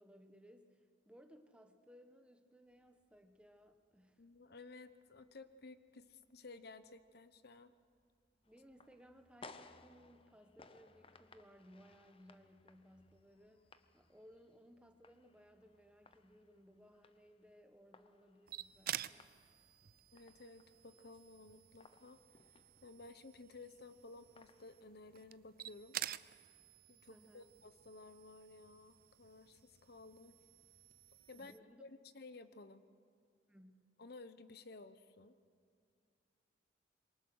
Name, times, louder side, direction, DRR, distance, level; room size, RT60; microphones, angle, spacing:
voice 1, 0.0-4.2 8.5-13.7 13.9-19.3 27.1-27.5 31.3-31.8 33.5-33.8, equal, 5° right, 6 dB, 1.3 m, -62 dB
Motorcycle, 2.6-19.8, equal, 15° left, 3.8 m, -80 dB
voice 2, 4.2-7.7 20.1-22.2 22.8-26.0 26.9-30.4 31.3-31.5 31.8-32.9 34.0-35.3, left 3 dB, 60° left, 12 dB, 1.0 m, -55 dB
sound 1, 8.4-25.1, left 3 dB, 30° left, 0.9 m, -63 dB
sound 2, 18.5-31.6, right 12 dB, 55° right, 0.5 m, -50 dB
27.0 x 23.5 x 6.4 m, 2.3 s
head